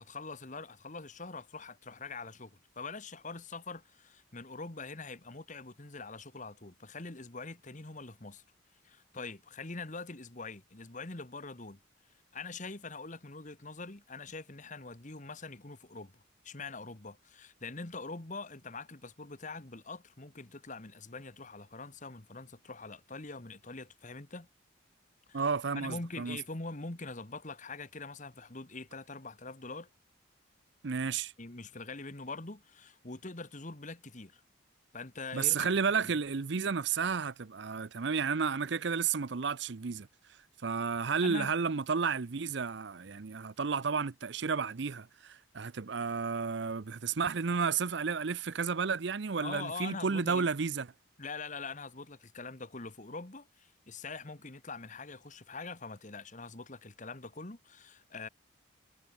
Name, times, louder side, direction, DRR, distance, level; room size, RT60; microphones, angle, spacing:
voice 1, 0.0-8.4 8.8-11.8 12.3-16.1 16.4-24.5 25.3-25.4 25.7-29.9 31.4-34.4 34.9-35.7 36.0-36.1 41.2-41.5 49.4-50.5 51.2-58.3, left 3 dB, 40° left, 1.6 m, -44 dB
voice 2, 25.3-26.4 30.8-31.3 35.3-40.1 40.6-50.9, right 5 dB, 60° right, 0.6 m, -32 dB
head